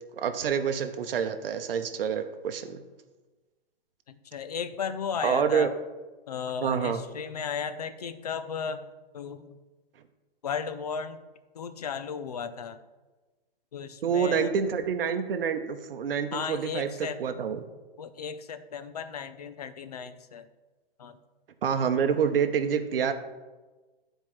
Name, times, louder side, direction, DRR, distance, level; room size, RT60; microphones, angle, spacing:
voice 1, 0.1-2.8 5.2-5.7 6.6-7.0 14.0-16.9 17.2-17.6 21.6-23.1, right 7 dB, 65° right, 8 dB, 0.8 m, -27 dB
voice 2, 4.1-5.7 6.3-8.9 9.1-9.6 10.4-11.2 11.5-12.8 13.7-14.5 16.3-17.2 18.0-20.5 21.0-21.2, left 6 dB, 40° left, 12 dB, 0.4 m, -35 dB
11.5 x 4.5 x 3.1 m, 1.2 s
hypercardioid pair, 175°, 30 cm